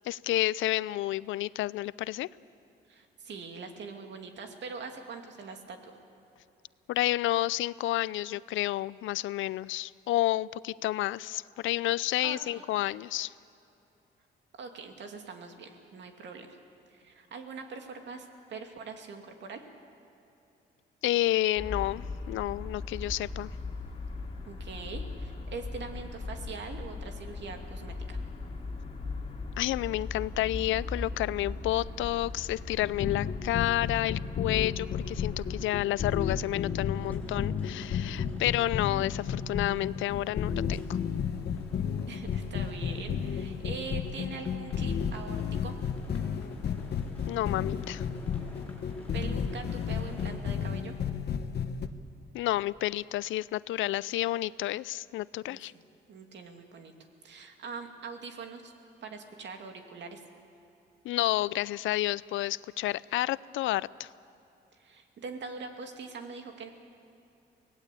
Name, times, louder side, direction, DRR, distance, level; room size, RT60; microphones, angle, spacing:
voice 1, 0.0-2.3 6.9-13.3 21.0-23.5 29.6-40.8 47.3-48.1 52.3-55.7 61.0-64.1, left 15 dB, 80° left, 20 dB, 0.5 m, -30 dB
voice 2, 2.9-6.0 12.2-12.6 14.5-16.6 16.9-19.6 24.5-28.2 42.1-45.8 49.1-50.9 55.5-55.8 56.1-56.9 57.2-58.7 59.0-60.2 64.8-66.7, right 4 dB, 65° right, 4 dB, 2.5 m, -43 dB
sound 1, 21.6-35.6, left 3 dB, 30° left, 2.6 m, -39 dB
sound 2, 32.8-51.9, left 7 dB, 55° left, 1.1 m, -33 dB
sound 3, 36.0-50.4, left 1 dB, 10° left, 5.9 m, -48 dB
24.0 x 18.0 x 8.5 m, 2.8 s
cardioid pair, 90°, 20 cm